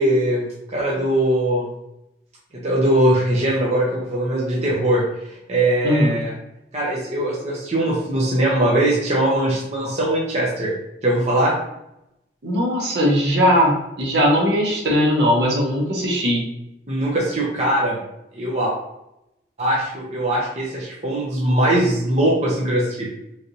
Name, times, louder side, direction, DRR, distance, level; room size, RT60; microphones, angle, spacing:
voice 1, 0.0-1.7 2.5-6.3 6.7-10.7 11.0-11.5 16.9-18.0 18.3-18.8 19.6-23.1, right 1 dB, 35° right, -5 dB, 0.6 m, -21 dB
voice 2, 5.8-6.2 12.4-16.4, equal, 65° right, -2 dB, 0.8 m, -19 dB
3.2 x 2.6 x 2.7 m, 0.86 s
head